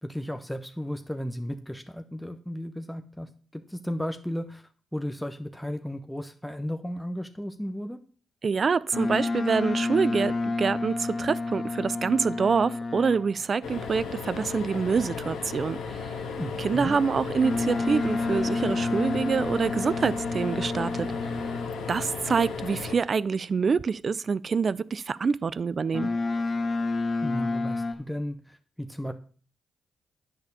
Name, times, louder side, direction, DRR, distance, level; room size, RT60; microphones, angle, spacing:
voice 1, 0.0-8.0 16.4-17.0 27.2-29.1, equal, 5° left, 0.9 m, -34 dB
voice 2, 8.4-16.2 16.6-21.1 21.9-26.1, right 5 dB, 50° right, 0.4 m, -26 dB
Boat Water vehicle, 8.9-13.4 17.4-21.9 25.9-27.9, left 3 dB, 50° left, 1.6 m, -29 dB
sound 1, 13.6-22.9, left 5 dB, 80° left, 1.5 m, -35 dB
9.6 x 4.3 x 6.9 m
supercardioid pair, 45°, 0 cm